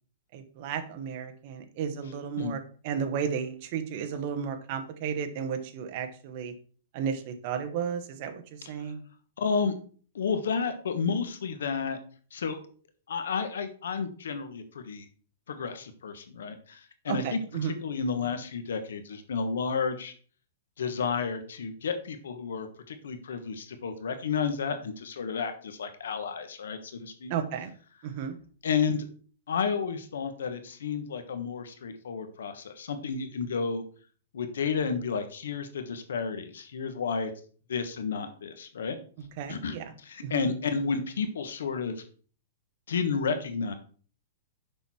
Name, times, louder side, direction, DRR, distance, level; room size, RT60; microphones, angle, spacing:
voice 1, 0.3-6.5 6.9-8.4 8.7-9.0 17.1-17.8 27.3-27.7 28.0-28.4 39.4-39.9 40.2-40.5, right 7 dB, 35° right, 7 dB, 1.1 m, -33 dB
voice 2, 9.4-9.7 10.1-12.0 12.3-12.6 13.1-15.1 15.5-20.1 20.8-27.3 28.6-29.1 29.5-33.8 34.3-37.3 37.7-39.0 39.5-42.0 42.9-43.7, left 5 dB, 90° left, 9 dB, 1.2 m, -31 dB
6.9 x 6.0 x 4.3 m, 0.42 s
hypercardioid pair, 165°, 0 cm